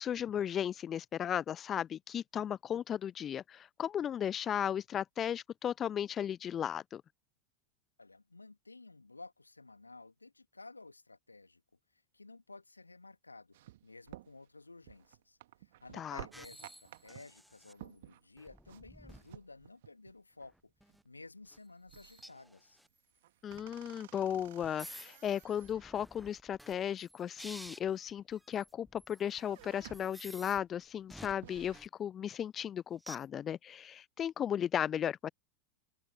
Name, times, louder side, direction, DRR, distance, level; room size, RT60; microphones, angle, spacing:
voice 1, 0.0-7.0 15.9-16.2 23.4-35.3, left 9 dB, 25° left, 0.5 m, -35 dB
voice 2, 8.0-11.6 12.1-13.6 13.8-15.4 15.8-20.7 21.0-22.8, left 3 dB, 80° left, 2.2 m, -54 dB
sound 1, 13.5-20.2 20.5-20.6 20.9-21.2 21.5-22.5 22.9-26.1 27.2-28.1 28.6-29.0 29.3-30.2 30.6-30.7 31.1-31.8, right 15 dB, 55° right, 2.1 m, -54 dB
sound 2, 16.3-17.7 18.4-19.4 20.4-21.0 21.5-21.6 21.9-22.9 23.5-23.7 24.6-30.6 31.1-31.9 33.0-33.3, equal, ahead, 1.0 m, -53 dB
figure-of-eight pair, 90°, 0 cm